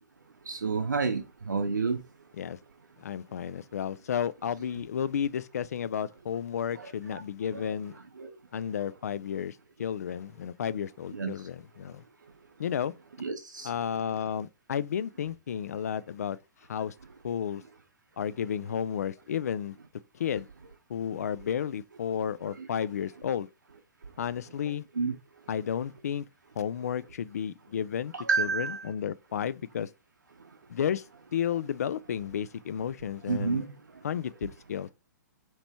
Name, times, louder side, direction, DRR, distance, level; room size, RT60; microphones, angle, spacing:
voice 1, 0.5-2.0 6.8-7.2 7.5-7.6 8.2-8.4 11.1-11.3 13.2-13.7 22.6-22.7 25.0-25.1 28.1-28.9 33.3-33.7, right 4 dB, 70° right, 0.6 m, -30 dB
voice 2, 3.0-7.9 8.5-12.0 12.6-12.9 13.6-16.4 16.7-16.9 17.2-17.6 18.2-19.7 20.2-20.5 20.9-23.5 24.2-24.8 25.5-26.3 26.6-29.9 30.7-31.0 31.3-33.6 34.0-34.9, left 8 dB, 55° left, 0.3 m, -32 dB
2.9 x 2.9 x 3.3 m
figure-of-eight pair, 120°, 10 cm